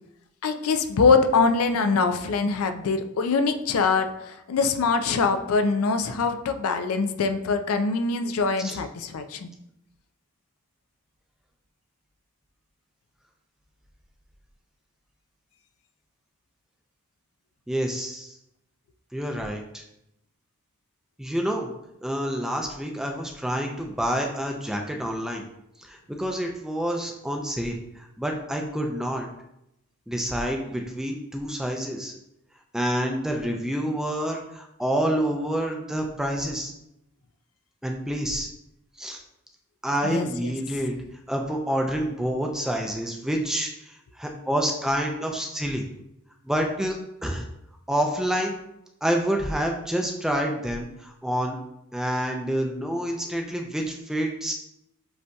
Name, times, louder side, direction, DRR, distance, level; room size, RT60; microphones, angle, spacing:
voice 1, 0.4-9.5 40.0-40.5, left 4 dB, 90° left, 8 dB, 0.4 m, -23 dB
voice 2, 17.7-18.3 19.1-19.8 21.2-21.7 22.0-25.4 25.9-29.3 30.1-32.1 32.7-36.7 37.8-38.5 39.0-39.2 39.8-41.0 41.3-45.8 46.4-47.0 47.2-47.5 47.9-48.6 49.0-51.6 51.9-54.5, equal, 5° right, 2 dB, 0.4 m, -28 dB
7.7 x 2.7 x 2.3 m, 0.83 s
head